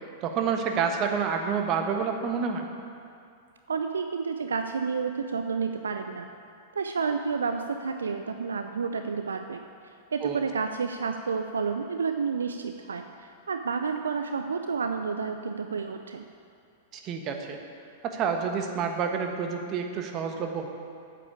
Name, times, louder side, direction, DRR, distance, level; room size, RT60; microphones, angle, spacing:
voice 1, 0.2-2.7 10.2-10.4 16.9-17.6 18.0-20.7, right 6 dB, 35° right, 4 dB, 1.3 m, -28 dB
voice 2, 3.7-6.3 6.8-9.6 10.1-16.2, right 5 dB, 75° right, 6 dB, 0.5 m, -30 dB
8.6 x 7.6 x 8.5 m, 2.4 s
figure-of-eight pair, 95°, 0 cm